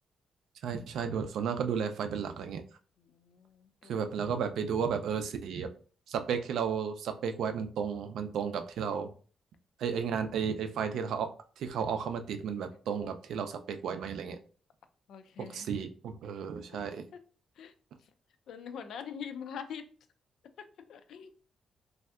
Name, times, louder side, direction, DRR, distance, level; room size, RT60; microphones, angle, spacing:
voice 1, 0.6-2.6 3.9-5.7 6.1-9.1 9.8-11.3 11.6-14.4 15.4-17.0, right 7 dB, 80° right, 0.4 m, -33 dB
voice 2, 3.0-4.3 15.1-15.8 16.7-16.8 17.6-17.7 18.0-18.1 18.5-19.9 20.6-21.3, left 7 dB, 70° left, 0.3 m, -44 dB
3.2 x 2.7 x 2.3 m
cardioid pair, 160°, 0 cm